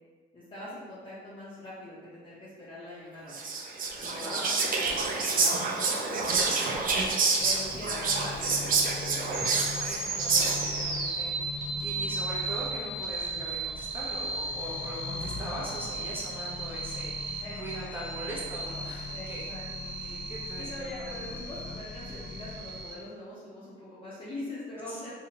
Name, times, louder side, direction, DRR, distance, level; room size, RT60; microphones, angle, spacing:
voice 1, 0.3-3.4 3.9-6.9 7.4-9.1 17.4-18.1 19.1-20.3 20.6-25.1, left 1 dB, 25° left, -11 dB, 0.8 m, -42 dB
Whispering, 3.3-10.9, right 4 dB, 45° right, 0.5 m, -28 dB
voice 2, 3.9-4.6 7.5-8.1 9.8-19.5 20.0-21.4 24.9-25.1, right 1 dB, 10° right, -7 dB, 1.0 m, -41 dB
Accelerating revving vroom, 7.4-22.8, left 5 dB, 55° left, 0.4 m, -42 dB
sound 1, 9.3-22.9, right 3 dB, 75° right, 0.7 m, -36 dB
2.7 x 2.4 x 2.9 m, 1.4 s
cardioid pair, 90°, 20 cm